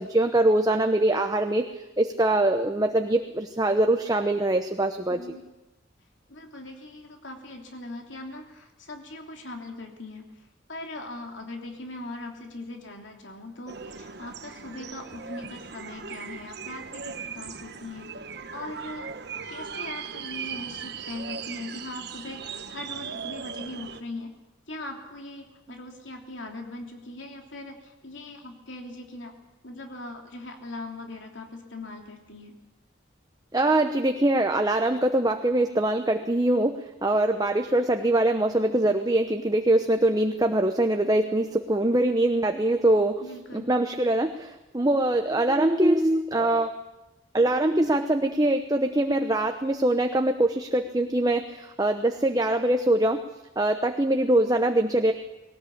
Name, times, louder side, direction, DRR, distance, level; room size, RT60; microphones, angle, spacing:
voice 1, 0.0-5.2 33.5-43.2 43.7-46.7 47.3-53.2 53.6-55.1, right 1 dB, 20° right, 5 dB, 0.9 m, -23 dB
voice 2, 5.1-5.4 6.3-18.1 18.5-19.1 19.5-24.4 24.7-29.3 29.6-32.6 41.1-41.6 43.2-43.7, left 2 dB, 70° left, 3 dB, 3.1 m, -40 dB
sound 1, 13.7-24.0, right 6 dB, 55° right, 1.2 m, -38 dB
20.5 x 18.5 x 8.6 m, 1.0 s
head